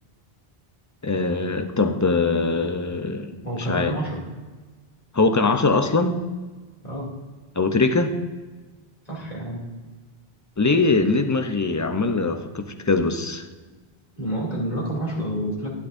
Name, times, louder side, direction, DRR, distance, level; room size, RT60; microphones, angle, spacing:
voice 1, 1.0-3.3 3.7-3.9 5.1-6.2 7.6-8.1 10.6-13.4, left 3 dB, 25° left, 7 dB, 0.5 m, -22 dB
voice 2, 3.4-4.2 6.8-7.1 9.1-9.6 14.2-15.7, right 1 dB, 40° left, -4 dB, 2.8 m, -28 dB
12.0 x 9.9 x 2.6 m, 1.3 s
omnidirectional pair, 1.0 m